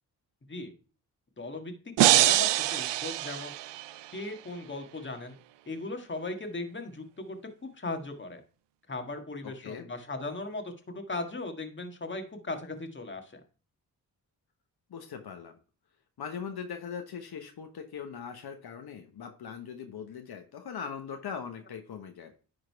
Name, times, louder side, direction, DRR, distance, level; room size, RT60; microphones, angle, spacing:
voice 1, 1.4-1.7 2.0-3.5 4.1-5.4 5.7-8.4 8.9-13.4, left 2 dB, 25° left, 5 dB, 1.7 m, -38 dB
sound 1, 2.0-4.1, right 15 dB, 80° right, 0.5 m, -24 dB
voice 2, 9.4-9.9 14.9-15.6 16.2-22.3, left 7 dB, 60° left, 5 dB, 1.1 m, -40 dB
10.5 x 3.9 x 4.6 m, 0.37 s
cardioid pair, 65°, 42 cm